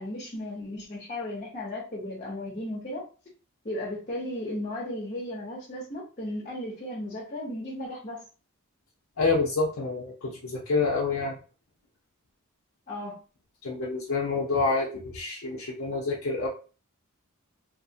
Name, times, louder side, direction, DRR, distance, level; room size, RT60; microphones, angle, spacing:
voice 1, 0.0-3.1 3.6-8.2 12.9-13.2, left 1 dB, 35° left, -4 dB, 0.8 m, -35 dB
voice 2, 9.2-11.3 13.6-16.5, left 3 dB, 70° left, -3 dB, 0.6 m, -27 dB
2.8 x 2.0 x 2.7 m, 0.35 s
head